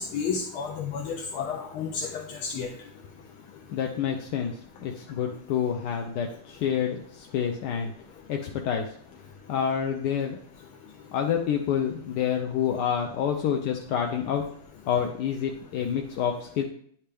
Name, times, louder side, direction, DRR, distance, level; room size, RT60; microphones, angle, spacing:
voice 1, 0.0-2.7, left 6 dB, 90° left, 2 dB, 1.6 m, -31 dB
voice 2, 3.7-7.9 8.3-8.9 9.5-10.4 11.1-14.4 14.9-16.6, left 8 dB, 70° left, 3 dB, 1.1 m, -28 dB
9.9 x 4.4 x 3.4 m, 0.64 s
omnidirectional pair, 2.2 m